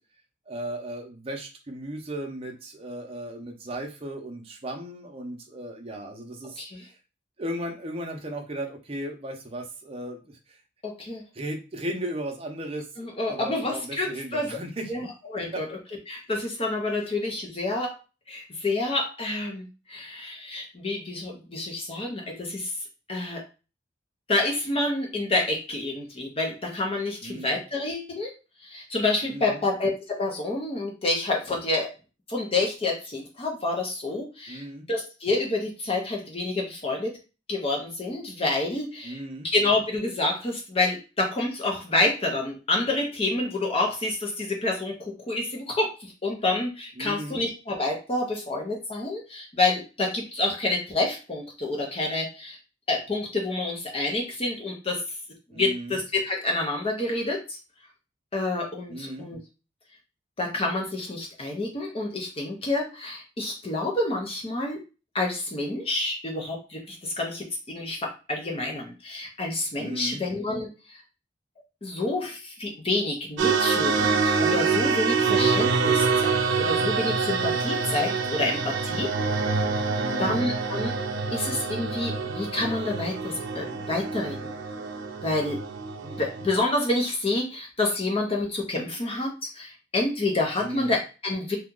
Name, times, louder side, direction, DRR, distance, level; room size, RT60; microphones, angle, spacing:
voice 1, 0.5-6.9 7.4-10.6 11.3-15.0 15.5-15.6 27.2-27.6 29.2-29.6 34.5-34.9 39.0-39.5 47.0-47.4 55.5-56.0 58.9-59.3 69.8-70.2 80.0-80.3 90.6-91.0, right 1 dB, 30° right, 2 dB, 0.7 m, -36 dB
voice 2, 10.8-11.2 13.0-14.5 14.9-15.1 15.3-15.7 16.1-18.0 18.3-22.7 23.1-23.4 24.3-28.3 28.6-31.9 32.3-37.1 37.5-52.6 52.9-55.0 55.5-57.6 58.3-59.4 60.4-64.8 65.1-71.0 71.8-79.1 80.2-80.9 81.3-84.6 85.2-85.6 86.0-91.6, left 2 dB, 30° left, 0 dB, 0.8 m, -28 dB
sound 1, 73.4-86.6, right 5 dB, 80° right, 0.5 m, -26 dB
2.8 x 2.4 x 3.7 m, 0.31 s
head